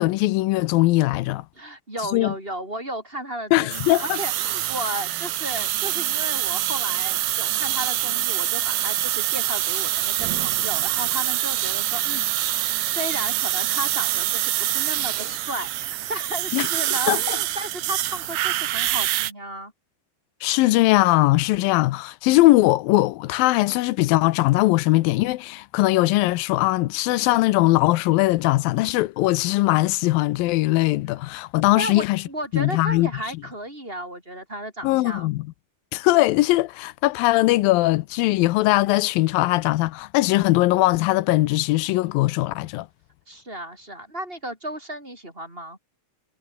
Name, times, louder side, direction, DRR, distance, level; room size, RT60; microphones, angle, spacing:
voice 1, 0.0-1.5 2.1-2.3 3.5-4.2 16.5-16.7 17.1-17.4 20.4-32.2 32.5-33.1 34.8-35.5 35.9-42.9, left 18 dB, 90° left, 2.5 m, -20 dB
voice 2, 1.6-19.7 31.8-35.3 43.3-45.8, right 1 dB, 15° right, 5.3 m, -34 dB
sound 1, 3.7-19.3, right 14 dB, 80° right, 3.0 m, -25 dB
omnidirectional pair, 4.1 m